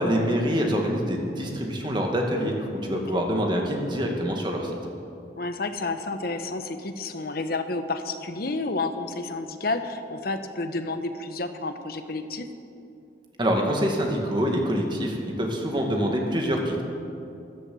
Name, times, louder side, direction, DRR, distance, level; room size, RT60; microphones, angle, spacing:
voice 1, 0.0-4.7 13.4-16.8, equal, 25° right, 1 dB, 2.0 m, -25 dB
voice 2, 5.4-12.5, left 3 dB, 55° left, 8 dB, 1.0 m, -30 dB
13.5 x 11.5 x 7.8 m, 2.7 s
head